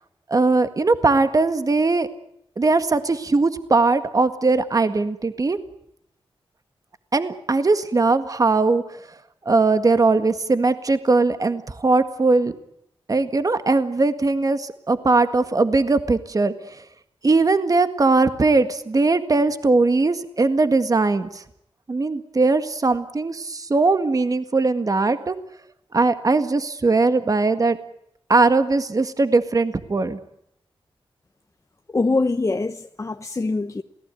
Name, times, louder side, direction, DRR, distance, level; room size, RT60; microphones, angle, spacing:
voice 1, 0.3-2.1 2.6-5.6 7.1-8.8 9.5-12.5 13.1-16.8 17.2-21.4 21.9-25.4 25.9-27.8 28.3-30.2, right 3 dB, 40° right, 1.8 m, -20 dB
voice 2, 31.9-33.8, left 3 dB, 35° left, 1.1 m, -23 dB
28.0 x 18.5 x 9.2 m
wide cardioid pair, 90°, 9 cm